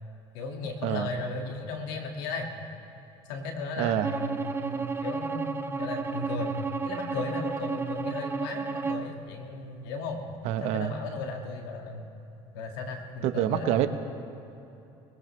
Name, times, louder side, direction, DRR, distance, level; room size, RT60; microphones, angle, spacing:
voice 1, 0.3-2.6 3.3-6.5 6.8-10.2 10.6-12.1 12.5-13.8, left 3 dB, 85° left, 2 dB, 1.9 m, -35 dB
voice 2, 3.8-4.1 10.4-10.9 13.2-13.9, right 12 dB, 65° right, 9 dB, 1.0 m, -26 dB
Bowed string instrument, 4.0-9.1, right 4 dB, 20° right, 0.7 m, -32 dB
22.0 x 17.5 x 3.2 m, 2.9 s
supercardioid pair, 100°, 12 cm